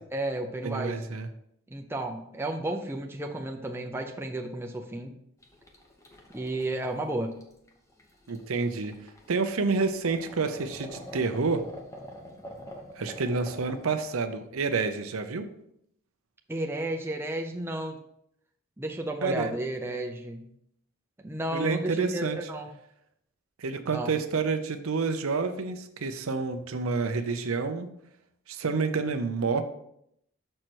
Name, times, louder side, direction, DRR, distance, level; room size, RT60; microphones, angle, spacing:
voice 1, 0.1-1.0 1.7-5.2 6.3-7.4 16.5-18.0 18.8-20.5 21.2-22.7 23.9-24.1, right 1 dB, 10° right, 2 dB, 0.5 m, -32 dB
voice 2, 0.6-1.3 8.3-8.9 9.3-11.6 13.0-15.5 19.2-19.5 21.5-22.4 23.6-27.9 28.5-29.6, right 4 dB, 90° right, 8 dB, 0.6 m, -29 dB
sound 1, 5.4-13.9, left 1 dB, 15° left, 0.8 m, -46 dB
6.4 x 4.5 x 4.5 m, 0.74 s
head